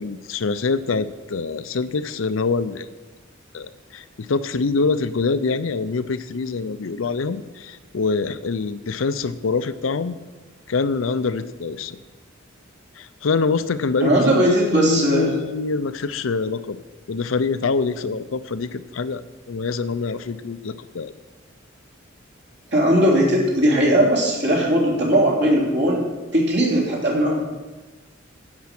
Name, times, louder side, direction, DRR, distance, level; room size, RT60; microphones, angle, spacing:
voice 1, 0.0-2.9 3.5-10.2 10.7-12.0 13.0-16.8 17.1-21.1, left 4 dB, 80° left, 13 dB, 0.6 m, -25 dB
voice 2, 14.0-15.3 22.7-26.0 26.3-27.4, right 1 dB, 60° right, -2 dB, 3.3 m, -18 dB
10.5 x 8.5 x 6.0 m, 1.2 s
head